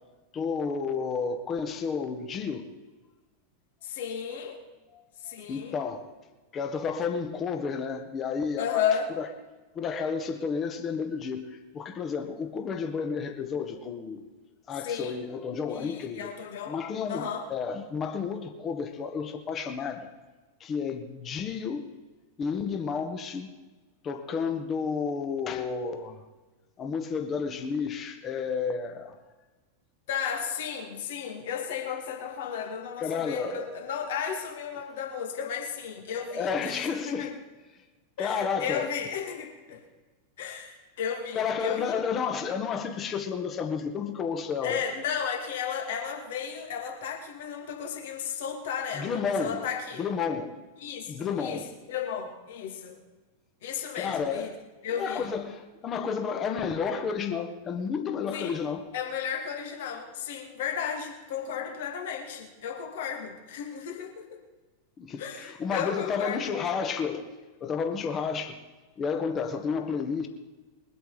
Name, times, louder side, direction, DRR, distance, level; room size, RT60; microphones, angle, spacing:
voice 1, 0.3-2.7 4.9-5.0 5.5-6.1 6.5-9.3 9.8-14.3 14.7-16.3 16.7-20.1 20.6-21.9 22.4-23.5 24.0-26.2 26.8-29.2 33.0-33.8 36.3-37.4 38.2-38.9 41.3-44.8 48.9-49.6 50.0-50.6 51.1-51.7 53.9-54.6 55.0-58.8 65.0-67.3 67.6-68.6 69.0-70.3, left 6 dB, 25° left, 5 dB, 1.7 m, -31 dB
voice 2, 3.8-4.6 5.2-5.8 8.6-9.1 14.8-15.2 15.7-16.8 17.1-17.5 30.1-37.3 38.2-39.8 40.4-42.0 44.6-50.0 50.8-53.0 53.6-54.5 54.8-55.3 58.3-58.6 58.9-64.4 65.2-66.5, left 7 dB, 55° left, 2 dB, 2.4 m, -34 dB
22.5 x 8.0 x 5.1 m, 1.2 s
figure-of-eight pair, 90°, 0 cm